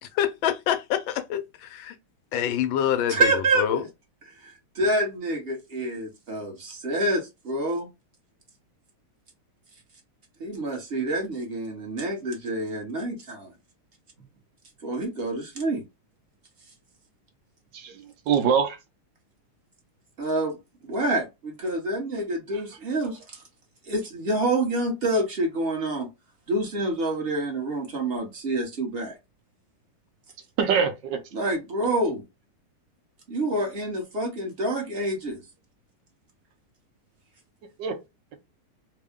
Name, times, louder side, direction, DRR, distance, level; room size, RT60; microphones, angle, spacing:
voice 1, 0.0-1.9 2.3-3.8, left 10 dB, 75° left, 1.3 m, -26 dB
voice 2, 3.1-3.9 4.3-7.9 10.4-13.5 14.8-15.8 20.2-20.6 20.8-23.4 23.8-26.1 26.5-29.2 31.3-32.2 33.3-35.4, right 2 dB, 35° right, 1.0 m, -27 dB
voice 3, 17.7-18.8 22.5-22.6 30.6-31.2 37.8-38.0, right 7 dB, 65° right, 1.3 m, -24 dB
3.6 x 2.2 x 3.5 m
omnidirectional pair, 2.3 m